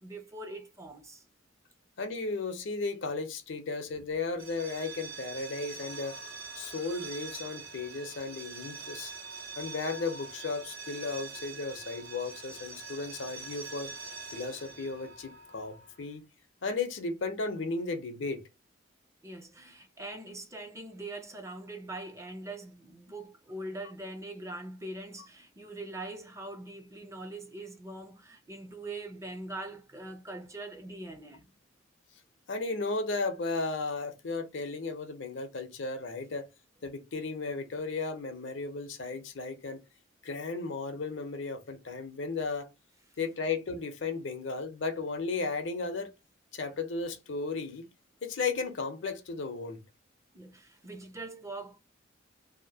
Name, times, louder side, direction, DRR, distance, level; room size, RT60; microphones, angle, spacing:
voice 1, 0.0-1.2 19.2-31.5 50.3-51.8, right 2 dB, 15° right, 0.4 m, -42 dB
voice 2, 2.0-6.2 6.6-9.1 9.6-13.9 14.3-16.2 16.6-18.4 32.5-36.5 36.8-39.8 40.2-42.7 43.2-46.1 46.5-47.8 48.2-49.8, left 3 dB, 65° left, 0.6 m, -35 dB
sound 1, 4.3-16.0, right 4 dB, 85° right, 0.8 m, -44 dB
2.8 x 2.5 x 2.7 m
head